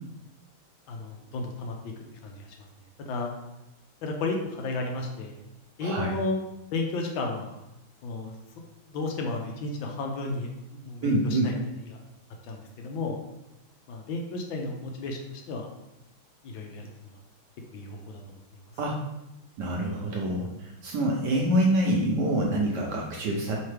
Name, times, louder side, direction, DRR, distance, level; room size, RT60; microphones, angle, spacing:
voice 1, 0.9-1.7 2.2-2.7 3.1-3.3 4.0-5.4 5.8-6.4 6.7-7.6 8.0-8.3 8.9-11.6 11.9-12.0 12.4-13.2 13.9-15.7 16.4-16.9 17.7-18.2, left 2 dB, 75° left, 2 dB, 1.4 m, -33 dB
voice 2, 5.8-6.1 11.0-11.5 18.8-19.0 19.6-23.6, right 1 dB, 70° right, -1 dB, 1.1 m, -26 dB
4.3 x 3.7 x 3.2 m, 0.91 s
omnidirectional pair, 2.3 m